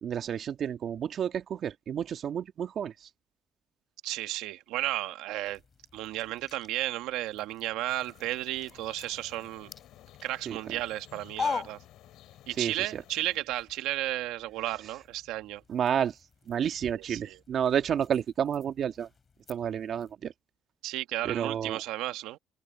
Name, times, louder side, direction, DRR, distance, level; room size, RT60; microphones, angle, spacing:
voice 1, 0.0-2.9 10.5-10.6 12.6-13.0 15.7-16.1 16.5-19.1 19.5-20.3 21.2-21.8, right 8 dB, 60° right, 1.9 m, -30 dB
voice 2, 4.0-5.6 5.9-9.7 10.2-11.8 12.5-15.6 16.9-17.4 20.8-22.4, right 16 dB, 80° right, 1.5 m, -33 dB
sound 1, 5.4-12.6 12.9-20.1, left 5 dB, 40° left, 4.4 m, -44 dB
sound 2, 7.8-13.4, left 14 dB, 75° left, 7.9 m, -55 dB
supercardioid pair, 70°, 0 cm